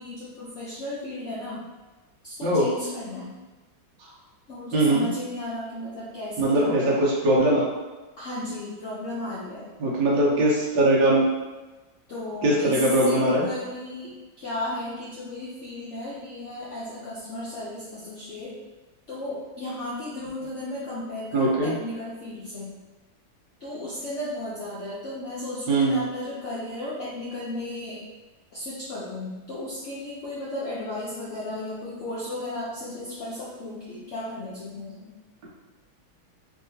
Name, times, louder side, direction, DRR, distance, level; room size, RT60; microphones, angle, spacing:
voice 1, 0.0-1.7 2.2-3.4 4.5-6.8 8.2-9.7 12.1-18.6 19.1-22.8 23.6-28.0 28.5-35.1, left 1 dB, 90° left, -7 dB, 0.6 m, -35 dB
voice 2, 4.7-5.1 6.4-7.6 9.8-11.2 12.4-13.5 21.3-21.7 25.7-26.1, right 1 dB, 70° right, -4 dB, 1.5 m, -21 dB
3.4 x 2.8 x 2.7 m, 1.2 s
omnidirectional pair, 2.1 m